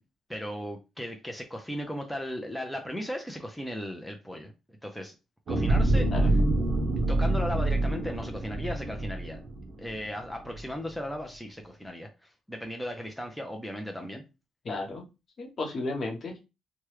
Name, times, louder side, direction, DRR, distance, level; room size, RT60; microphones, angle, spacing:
voice 1, 0.3-4.5 4.8-5.2 5.5-6.4 7.1-9.4 9.8-14.2, equal, ahead, 0.5 m, -36 dB
sound 1, 5.5-10.0 10.5-10.6, right 2 dB, 55° right, 0.7 m, -26 dB
voice 2, 14.6-15.0 15.4-16.4, left 2 dB, 45° left, 1.0 m, -33 dB
3.0 x 2.3 x 3.1 m
cardioid pair, 90°, 0 cm